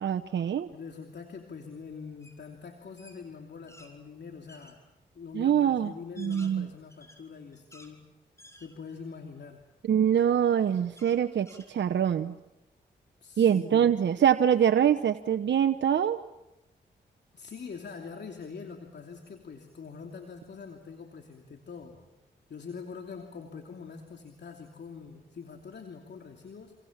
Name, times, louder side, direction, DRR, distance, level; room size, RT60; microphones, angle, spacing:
voice 1, 0.0-0.7 5.3-5.9 6.2-6.7 9.8-12.4 13.4-16.2, right 9 dB, 70° right, 9 dB, 1.0 m, -24 dB
voice 2, 0.7-4.8 5.1-8.0 8.6-9.6 13.2-13.9 17.3-22.0 22.5-26.8, left 5 dB, 65° left, 3 dB, 2.9 m, -44 dB
sound 1, 2.2-2.4 2.7-3.9 4.5-4.8 5.4-5.5 6.0-7.9 8.4-9.1 9.6-9.7 11.0-12.2, equal, 15° left, 7.2 m, -54 dB
28.0 x 27.0 x 7.4 m, 0.90 s
supercardioid pair, 45°, 19 cm